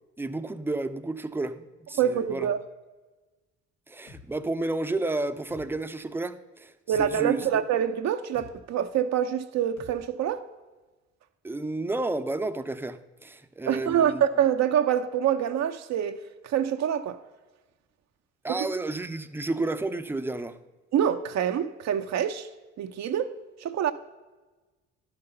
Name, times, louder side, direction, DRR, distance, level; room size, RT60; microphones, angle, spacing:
voice 1, 0.2-2.5 3.9-7.6 11.4-14.2 18.4-20.6, right 2 dB, 5° right, 0.6 m, -31 dB
voice 2, 2.0-2.6 6.9-10.4 13.6-17.2 18.5-18.7 20.9-22.5 22.8-23.9, right 9 dB, 60° right, 0.7 m, -26 dB
sound 1, 4.1-4.3 5.5-5.7 6.9-7.1 8.3-8.5 9.8-10.0, left 4 dB, 85° left, 1.5 m, -47 dB
11.5 x 5.9 x 5.4 m
supercardioid pair, 70°, 31 cm